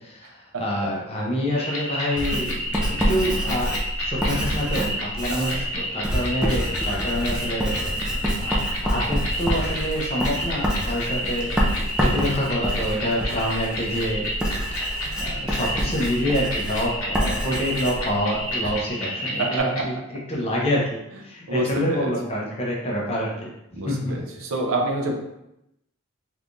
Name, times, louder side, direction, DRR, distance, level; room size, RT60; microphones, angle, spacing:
voice 1, 0.0-2.7 3.1-3.7 4.0-8.6 8.8-14.3 14.7-20.0 20.3-23.5 23.8-24.1, equal, 30° left, -3 dB, 0.7 m, -27 dB
voice 2, 0.5-0.9 5.3-5.6 18.6-18.7 19.4-19.9 21.5-22.1 23.7-25.1, right 1 dB, 70° right, 2 dB, 0.6 m, -27 dB
sound 1, 1.5-19.8, left 3 dB, 70° left, 0.8 m, -33 dB
sound 2, 1.5-19.6, equal, 90° right, 1.5 m, -32 dB
Writing, 2.2-18.8, equal, 5° right, 0.5 m, -27 dB
3.4 x 3.3 x 2.6 m, 0.86 s
head